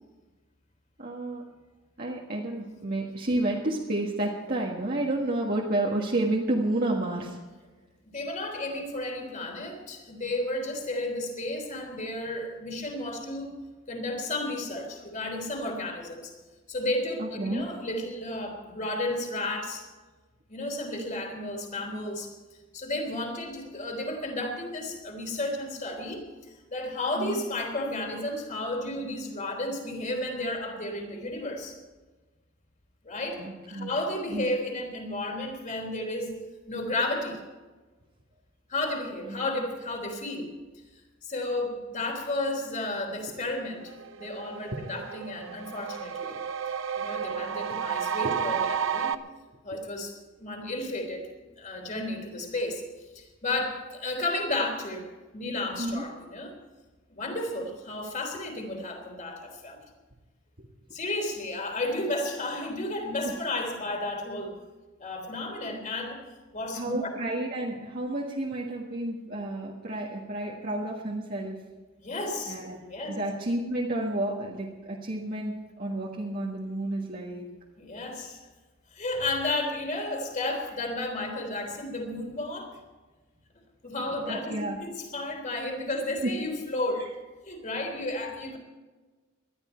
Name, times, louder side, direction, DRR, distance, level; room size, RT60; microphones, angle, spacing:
voice 1, 1.0-1.4 2.0-7.4 17.2-17.6 27.2-27.4 33.4-33.9 34.3-34.5 39.3-39.4 44.7-44.8 46.2-46.4 55.8-56.0 66.7-71.6 72.5-72.8 73.1-77.5 84.3-84.8 86.2-86.3, right 1 dB, 45° right, -3 dB, 1.7 m, -30 dB
voice 2, 8.1-13.6 13.9-16.3 16.7-19.8 20.5-22.3 22.7-26.2 26.7-31.7 33.0-33.4 33.7-36.4 36.7-37.4 38.7-40.5 41.2-43.9 44.2-46.3 47.0-49.1 49.6-50.1 50.4-51.3 51.6-52.8 53.1-55.1 55.3-56.5 57.1-59.8 60.9-64.5 65.0-66.2 66.5-67.1 72.0-72.6 72.9-73.2 77.8-78.4 78.9-82.8 83.8-87.1 87.4-88.6, left 2 dB, 35° left, 3 dB, 3.5 m, -32 dB
sound 1, 43.4-43.5 43.8-49.2, right 7 dB, 65° right, 0.7 m, -32 dB
20.0 x 12.5 x 4.5 m, 1.3 s
head